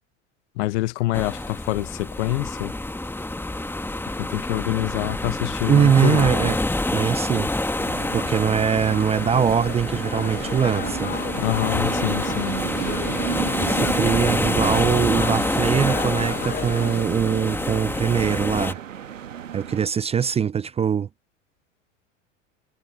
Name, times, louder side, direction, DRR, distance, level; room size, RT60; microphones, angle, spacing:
voice 1, 0.6-2.7 4.2-6.3 11.3-12.6, left 19 dB, 70° left, 0.9 m, -26 dB
sound 1, 1.1-18.7, left 2 dB, 5° left, 1.7 m, -27 dB
voice 2, 5.6-6.6 6.9-7.5 8.1-11.1 12.1-12.2 13.6-18.8 19.5-21.1, right 7 dB, 15° right, 0.4 m, -22 dB
sound 2, 7.8-19.9, right 9 dB, 90° right, 1.5 m, -34 dB
sound 3, 8.8-17.1, left 8 dB, 25° left, 1.2 m, -35 dB
hypercardioid pair, 80°, 37 cm